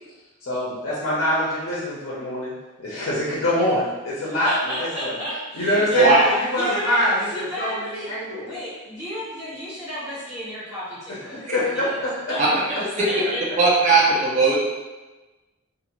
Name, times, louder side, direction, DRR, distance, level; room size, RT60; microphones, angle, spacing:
voice 1, 0.4-4.5 4.8-5.2 5.5-8.5 11.1-12.3, left 1 dB, 70° left, -6 dB, 0.6 m, -25 dB
voice 2, 4.4-11.4 11.7-12.0 12.3-12.8 13.1-13.4, equal, 15° right, -13 dB, 1.4 m, -32 dB
voice 3, 13.6-14.6, right 4 dB, 35° right, -6 dB, 0.6 m, -17 dB
2.5 x 2.4 x 3.0 m, 1.2 s
head